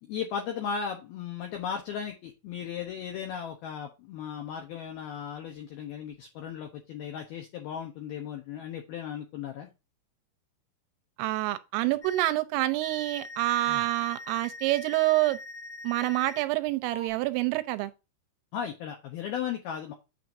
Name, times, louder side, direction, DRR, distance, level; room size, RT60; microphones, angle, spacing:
voice 1, 0.0-9.7 13.7-13.8 18.5-19.9, left 8 dB, 85° left, 2.2 m, -36 dB
voice 2, 11.2-15.4 15.8-17.9, right 18 dB, 90° right, 3.2 m, -27 dB
sound 1, 12.0-12.3 12.8-16.4 16.9-17.1, left 2 dB, 20° left, 3.7 m, -43 dB
9.0 x 7.1 x 2.6 m
omnidirectional pair, 5.7 m